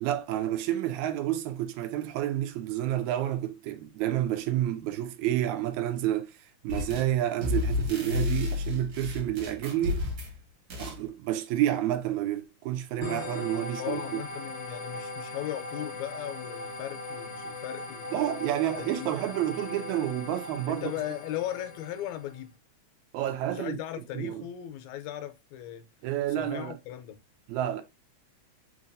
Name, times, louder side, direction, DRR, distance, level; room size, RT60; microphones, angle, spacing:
voice 1, 0.0-6.3 6.6-10.1 10.8-14.0 18.1-20.8 23.1-23.8 24.1-24.4 26.0-26.8 27.5-27.8, right 13 dB, 80° right, 1.9 m, -29 dB
sound 1, 6.7-7.1 7.4-10.4 10.7-11.0, left 3 dB, 55° right, 2.1 m, -31 dB
sound 2, 13.0-22.4, left 2 dB, 60° left, 1.2 m, -39 dB
voice 2, 13.8-18.1 18.8-19.1 20.7-22.6 23.5-25.9 26.4-27.2, left 13 dB, 80° left, 1.9 m, -37 dB
4.6 x 2.9 x 2.5 m
omnidirectional pair, 3.4 m